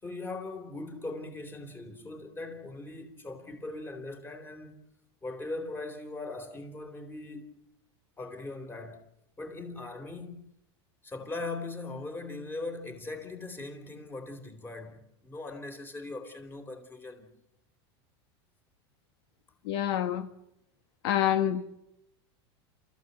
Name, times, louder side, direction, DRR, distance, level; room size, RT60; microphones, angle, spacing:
voice 1, 0.0-4.8 5.2-7.5 8.2-9.1 9.4-10.5 11.0-17.3, left 2 dB, 15° left, 3.9 m, -40 dB
voice 2, 19.6-20.3 21.0-21.6, left 11 dB, 70° left, 1.5 m, -27 dB
28.5 x 15.0 x 8.3 m
supercardioid pair, 135°, 14 cm